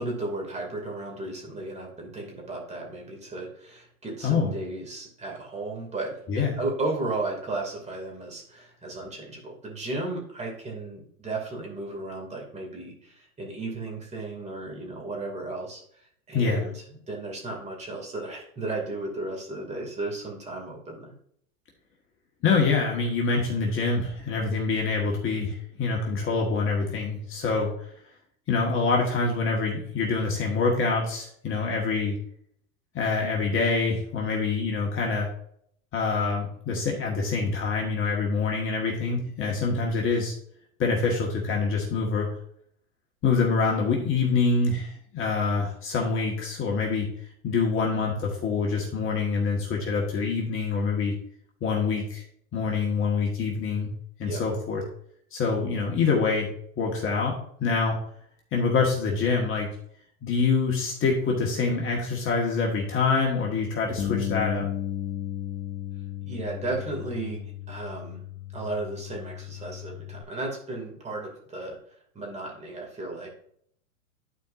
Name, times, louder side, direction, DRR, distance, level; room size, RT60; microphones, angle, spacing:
voice 1, 0.0-21.1 54.2-54.4 66.2-67.4 67.7-68.2 68.5-71.8 72.1-73.3, right 2 dB, 15° right, -1 dB, 2.5 m, -34 dB
voice 2, 6.3-6.6 16.3-16.6 22.4-27.9 28.5-32.2 32.9-35.3 35.9-40.3 40.8-42.3 43.2-47.1 47.4-51.1 51.6-52.2 52.5-53.9 54.2-54.8 55.3-56.5 56.8-58.0 58.5-59.7 60.2-64.7, left 4 dB, 30° left, -1 dB, 1.6 m, -25 dB
Bass guitar, 64.0-70.2, left 11 dB, 15° left, 0.4 m, -34 dB
12.0 x 4.5 x 2.6 m, 0.65 s
hypercardioid pair, 120°, 44 cm